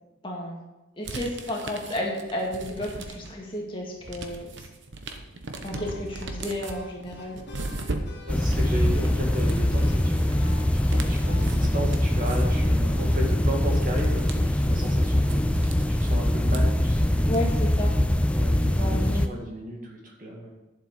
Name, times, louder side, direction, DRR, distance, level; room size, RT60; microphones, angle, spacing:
voice 1, 0.2-0.6 1.0-4.7 5.6-7.4 17.3-17.9 18.8-19.2, left 1 dB, 25° left, -2 dB, 1.8 m, -32 dB
sound 1, 1.0-3.5 3.8-17.7, right 2 dB, 55° right, 1.0 m, -38 dB
sound 2, 5.7-11.7, left 2 dB, 55° left, 2.5 m, -47 dB
voice 2, 8.2-17.4 18.3-20.5, equal, 40° right, 0 dB, 2.0 m, -34 dB
sound 3, 8.3-19.3, left 1 dB, 5° left, 0.3 m, -23 dB
11.5 x 7.5 x 5.5 m, 1.0 s
head